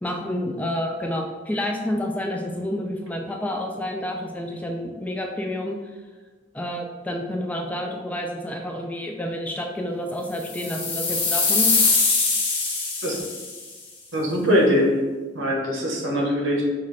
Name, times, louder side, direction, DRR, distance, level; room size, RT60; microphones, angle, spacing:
voice 1, 0.0-5.8 6.5-11.7, left 1 dB, 10° left, 2 dB, 0.3 m, -29 dB
sound 1, 10.4-13.6, left 4 dB, 30° left, 0.8 m, -22 dB
voice 2, 14.1-14.9 15.3-16.6, equal, 90° right, -1 dB, 1.0 m, -22 dB
5.6 x 2.5 x 3.1 m, 1.3 s
head